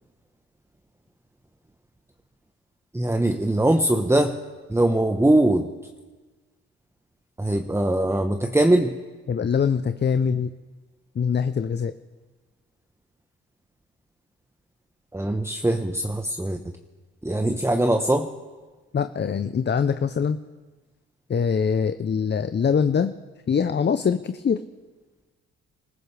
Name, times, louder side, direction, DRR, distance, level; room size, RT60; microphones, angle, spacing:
voice 1, 2.9-4.4 4.7-5.7 7.4-8.9 15.1-16.6 17.2-18.3, right 1 dB, 10° right, 5 dB, 1.2 m, -21 dB
voice 2, 9.3-10.5 11.2-11.9 18.9-20.4 21.3-23.1 23.5-24.6, left 6 dB, 30° left, 11 dB, 0.7 m, -23 dB
25.5 x 15.0 x 3.4 m, 1.3 s
hypercardioid pair, 50°, 34 cm